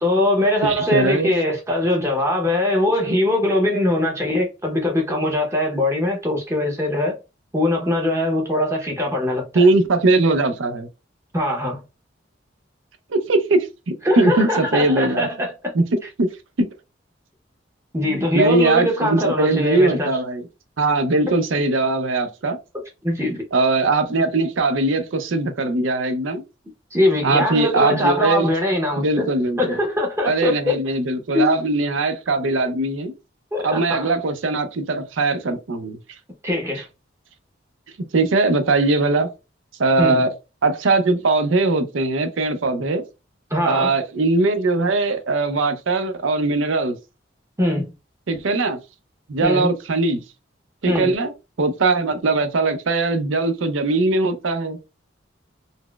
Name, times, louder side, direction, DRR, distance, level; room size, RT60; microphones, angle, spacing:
voice 1, 0.0-7.2 7.5-9.7 11.3-11.8 14.0-15.5 17.9-20.2 23.0-23.4 26.9-29.2 29.6-30.7 31.3-31.5 33.5-34.1 36.4-36.9 40.0-40.2 43.5-43.9 47.6-47.9 49.4-49.7 50.9-51.1, left 1 dB, 15° right, 0.7 m, -21 dB
voice 2, 0.6-1.3 9.5-10.9 13.1-15.3 15.7-16.3 18.0-20.5 20.8-22.6 23.5-26.4 27.2-28.5 28.9-29.8 30.3-33.1 33.6-36.0 38.1-39.3 39.8-40.3 40.6-43.0 43.6-47.0 48.3-48.8 49.3-50.2 50.8-51.3 51.6-54.8, right 3 dB, 85° right, 0.5 m, -20 dB
4.0 x 2.0 x 2.2 m
head